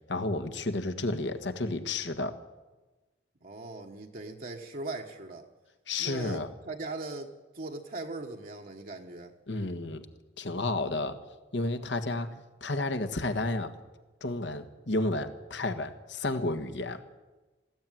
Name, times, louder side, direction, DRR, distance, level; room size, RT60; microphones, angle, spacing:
voice 1, 0.1-2.4 5.9-6.5 9.5-10.0 10.4-11.2 11.5-12.3 12.6-13.7 14.2-17.0, left 2 dB, 70° left, 8 dB, 1.6 m, -31 dB
voice 2, 3.4-5.5 6.0-9.4 12.1-12.2, right 2 dB, 50° right, 1 dB, 1.3 m, -40 dB
20.0 x 14.0 x 9.3 m, 1.2 s
head